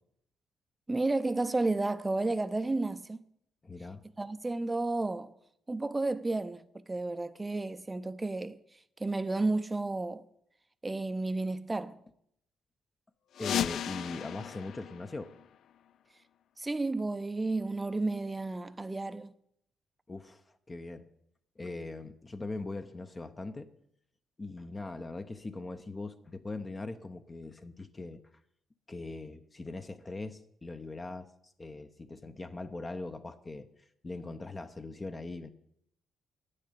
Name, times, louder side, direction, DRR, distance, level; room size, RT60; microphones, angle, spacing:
voice 1, 0.9-3.2 4.2-5.3 5.7-10.3 10.8-12.0 16.6-19.3, right 2 dB, 20° right, 0.6 m, -32 dB
voice 2, 3.6-4.0 13.4-15.3 20.1-20.4 20.7-21.1 21.6-23.7 24.4-28.2 28.9-33.7 34.0-35.5, left 3 dB, 25° left, 0.7 m, -41 dB
sound 1, 13.3-16.0, left 10 dB, 70° left, 0.3 m, -36 dB
9.5 x 6.6 x 8.4 m
cardioid pair, 90°, 0 cm